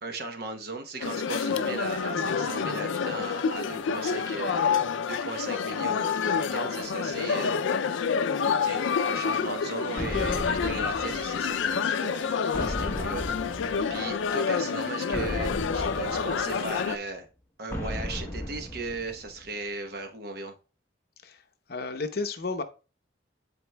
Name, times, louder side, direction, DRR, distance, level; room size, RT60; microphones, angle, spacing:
voice 1, 0.0-4.7 5.1-7.6 8.6-17.3 17.6-20.5, right 3 dB, 55° right, 0.9 m, -37 dB
sound 1, 1.0-17.0, left 6 dB, 85° left, 0.4 m, -28 dB
sound 2, 10.0-11.7 12.5-14.3 15.1-16.9 17.7-19.5, equal, 10° left, 0.9 m, -36 dB
voice 2, 21.7-22.6, left 3 dB, 55° left, 0.7 m, -32 dB
11.0 x 4.1 x 2.2 m
head